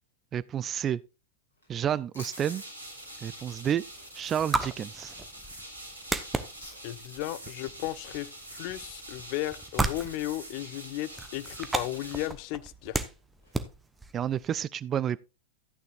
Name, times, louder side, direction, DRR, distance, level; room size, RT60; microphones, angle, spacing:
voice 1, 0.3-1.0 1.7-2.6 3.2-3.8 4.1-5.1 14.1-15.2, right 9 dB, 25° right, 0.4 m, -30 dB
sound 1, 1.5-13.8, left 1 dB, 70° left, 6.1 m, -55 dB
sound 2, 2.3-12.3, right 1 dB, 80° right, 2.5 m, -45 dB
sound 3, 2.8-14.6, right 3 dB, 10° right, 1.0 m, -36 dB
voice 2, 6.8-13.0, left 15 dB, 45° left, 0.6 m, -35 dB
14.0 x 9.2 x 2.4 m
figure-of-eight pair, 90°, 0 cm